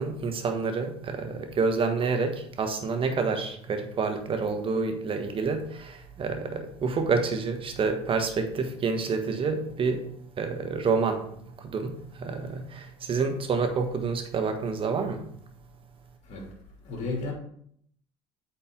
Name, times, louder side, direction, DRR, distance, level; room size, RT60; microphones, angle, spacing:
voice 1, 0.0-10.0 10.4-11.2 11.6-15.2, right 4 dB, 40° right, 1.3 m, -28 dB
voice 2, 16.2-16.5 16.8-17.3, left 3 dB, 55° left, 2.8 m, -33 dB
8.2 x 4.5 x 3.8 m
hypercardioid pair, 70°, 14 cm